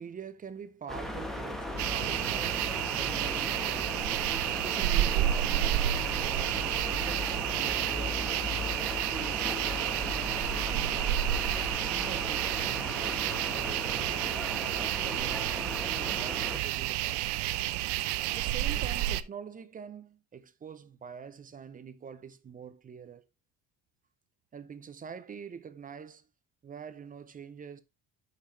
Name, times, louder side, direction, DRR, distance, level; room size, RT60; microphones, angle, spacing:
voice 1, 0.0-4.2 4.6-8.4 9.0-11.3 11.8-17.3 18.2-23.2 24.5-26.3 26.6-27.8, right 7 dB, 20° right, 0.5 m, -45 dB
sound 1, 0.9-16.6, left 1 dB, ahead, 1.0 m, -37 dB
sound 2, 1.8-19.2, right 14 dB, 80° right, 0.6 m, -30 dB
10.0 x 5.8 x 3.1 m
cardioid pair, 160°, 40 cm